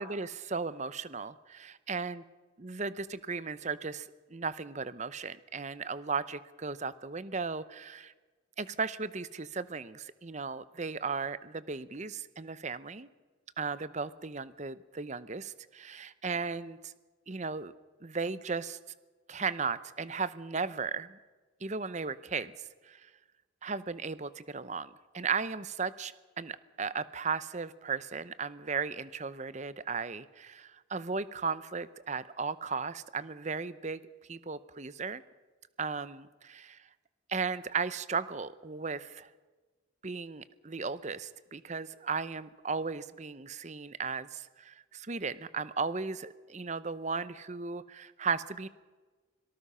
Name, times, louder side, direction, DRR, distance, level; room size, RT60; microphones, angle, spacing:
voice 1, 0.0-2.2 2.6-8.1 8.6-13.1 13.6-16.9 17.3-17.7 18.0-18.8 19.3-21.2 21.6-23.1 23.6-35.2 35.8-36.9 37.3-39.3 40.0-48.7, right 5 dB, 35° right, 16 dB, 0.8 m, -36 dB
25.5 x 18.5 x 5.7 m, 1.3 s
head